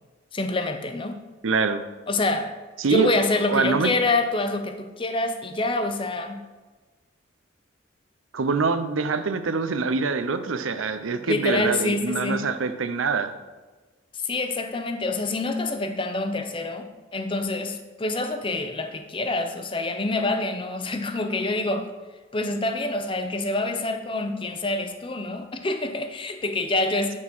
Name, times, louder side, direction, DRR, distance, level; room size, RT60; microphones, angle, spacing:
voice 1, 0.3-1.2 2.1-2.5 2.9-6.5 11.1-12.5 14.2-21.9 22.3-27.1, left 2 dB, 25° left, 8 dB, 0.6 m, -26 dB
voice 2, 1.4-1.8 2.8-3.1 3.5-3.9 8.3-13.3, right 4 dB, 80° right, 10 dB, 0.6 m, -24 dB
9.7 x 3.9 x 6.1 m, 1.3 s
head